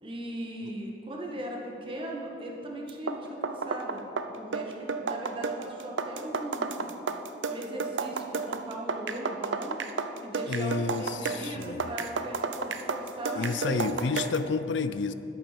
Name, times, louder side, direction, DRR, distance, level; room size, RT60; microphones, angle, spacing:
voice 1, 0.0-6.9 7.5-9.7 10.2-13.9, right 1 dB, 30° right, -1 dB, 1.7 m, -38 dB
sound 1, 2.9-14.5, right 4 dB, 80° right, 0.6 m, -32 dB
voice 2, 10.5-11.9 13.3-15.1, left 4 dB, 70° left, 12 dB, 0.5 m, -30 dB
11.5 x 8.7 x 6.1 m, 2.8 s
head